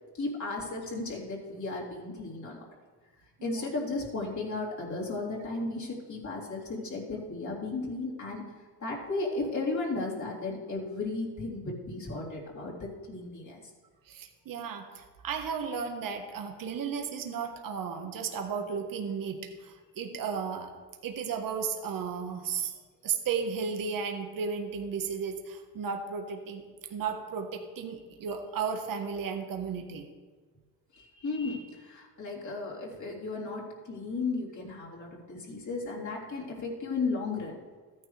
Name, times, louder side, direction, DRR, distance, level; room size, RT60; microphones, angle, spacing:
voice 1, 0.1-2.6 3.4-8.4 8.8-13.6 30.9-37.6, left 3 dB, 45° left, -4 dB, 3.5 m, -35 dB
voice 2, 14.1-20.7 21.0-22.8 23.0-26.6 26.9-30.1, right 6 dB, 50° right, 4 dB, 1.4 m, -34 dB
14.0 x 9.7 x 3.4 m, 1.4 s
supercardioid pair, 80°, 42 cm